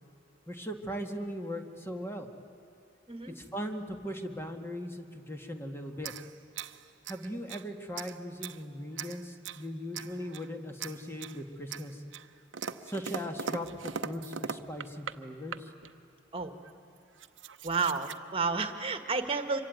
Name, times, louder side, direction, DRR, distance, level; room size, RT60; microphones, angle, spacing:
voice 1, 0.5-2.3 3.4-6.1 7.1-12.0 12.8-15.7, equal, 15° left, 4 dB, 1.8 m, -39 dB
sound 1, 6.0-7.7 7.9-8.6 9.0-9.6 9.9-10.5 10.8-11.4 11.7-15.2 15.5-15.9 16.6-16.7 17.0-18.2, right 6 dB, 85° right, 0.8 m, -40 dB
voice 2, 17.6-19.6, right 4 dB, 30° right, 8 dB, 1.7 m, -31 dB
26.0 x 24.0 x 9.5 m, 2.9 s
head